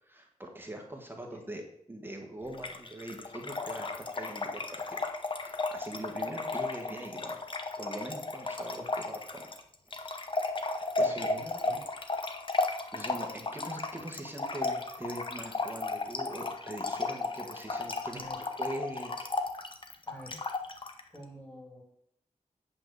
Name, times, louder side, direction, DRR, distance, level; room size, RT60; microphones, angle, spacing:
voice 1, 0.0-1.6 1.9-5.0 5.3-7.4 7.8-9.5 9.9-10.2 11.0-11.3 12.2-12.3 12.9-18.2 18.5-19.1, right 1 dB, 15° right, 2 dB, 1.4 m, -42 dB
Trickle dribble / Fill (with liquid), 2.5-21.0, left 3 dB, 40° left, 0.9 m, -34 dB
voice 2, 11.0-11.8 18.0-18.4 20.0-20.4 21.1-21.8, equal, 15° left, 0 dB, 3.1 m, -47 dB
8.7 x 5.5 x 6.8 m, 0.73 s
wide cardioid pair, 150°, 13 cm